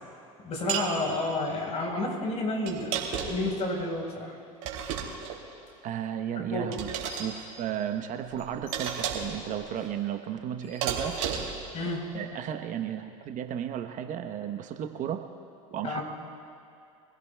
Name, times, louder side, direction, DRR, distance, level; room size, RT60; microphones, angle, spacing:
voice 1, 0.4-4.4 6.4-6.8 11.7-12.1 15.8-16.0, left 2 dB, 40° left, 0 dB, 4.3 m, -31 dB
sound 1, 0.7-0.9 2.7-3.5 4.6-5.4 6.7-7.3 8.7-9.4 10.8-11.6, right 8 dB, 65° right, 2.9 m, -32 dB
sound 2, 5.6-5.7 6.8-7.4 7.8-12.2, left 1 dB, 75° left, 4.0 m, -49 dB
voice 2, 5.8-6.9 7.2-11.2 11.8-11.9 12.1-15.2 15.7-16.0, right 10 dB, 45° right, 6 dB, 1.0 m, -34 dB
25.0 x 16.0 x 2.3 m, 2.5 s
hypercardioid pair, 85°, 18 cm